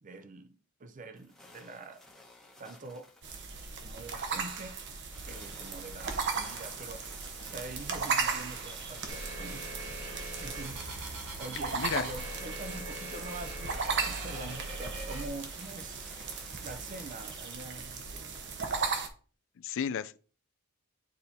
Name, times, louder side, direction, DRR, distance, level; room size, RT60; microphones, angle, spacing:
voice 1, 0.0-2.1 2.6-3.1 3.8-5.0 5.2-7.1 7.4-9.7 10.4-10.8 11.4-16.2 16.6-18.4, right 3 dB, 35° right, 0.6 m, -45 dB
sound 1, 1.1-17.6, left 2 dB, 5° left, 1.1 m, -55 dB
sound 2, 3.2-19.1, right 5 dB, 55° right, 0.9 m, -37 dB
sound 3, 9.1-15.3, right 2 dB, 80° right, 1.9 m, -41 dB
voice 2, 11.7-12.0 19.6-20.2, left 7 dB, 65° left, 0.4 m, -33 dB
9.7 x 4.3 x 2.7 m
head